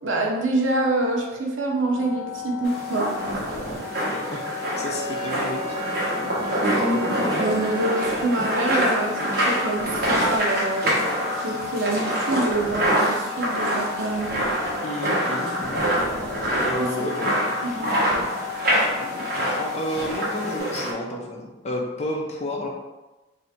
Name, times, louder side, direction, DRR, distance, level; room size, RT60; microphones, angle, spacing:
voice 1, 0.0-3.2 7.4-11.0 11.4-14.4 17.0-17.1 17.6-17.9, right 2 dB, 75° right, -1 dB, 0.8 m, -26 dB
sound 1, 1.9-20.6, left 6 dB, 55° left, 1.0 m, -34 dB
sound 2, 2.6-20.9, right 1 dB, 55° right, 1.1 m, -26 dB
voice 2, 4.0-6.3 14.8-15.8 16.6-17.7 19.0-22.7, left 1 dB, 35° left, 0 dB, 0.7 m, -31 dB
Wind instrument woodwind instrument, 4.3-9.0, right 4 dB, 30° right, 0.4 m, -37 dB
3.3 x 2.7 x 4.2 m, 1.1 s
head